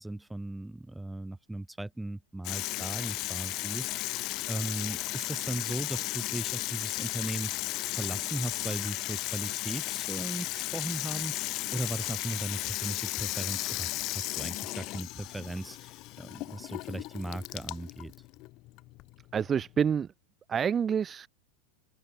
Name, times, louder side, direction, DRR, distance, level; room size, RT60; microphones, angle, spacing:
voice 1, 0.0-13.9 14.1-18.1, right 2 dB, 5° right, 4.3 m, -38 dB
Water tap faucet / Sink (filling or washing), 2.4-19.9, left 20 dB, 40° left, 0.8 m, -35 dB
voice 2, 19.3-20.1 20.5-21.3, right 7 dB, 20° right, 1.0 m, -27 dB
figure-of-eight pair, 90°, 0 cm